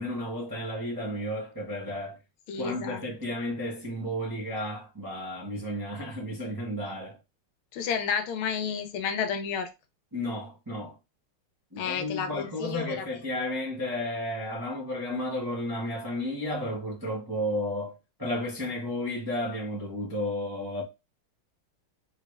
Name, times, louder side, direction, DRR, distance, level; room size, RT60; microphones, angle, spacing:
voice 1, 0.0-2.2 2.6-7.2 10.1-11.0 11.7-20.8, left 1 dB, 35° right, 0.3 m, -33 dB
voice 2, 2.5-3.0 7.7-9.7 11.8-13.2, left 6 dB, 80° left, 1.5 m, -31 dB
3.8 x 3.1 x 2.3 m
omnidirectional pair, 2.3 m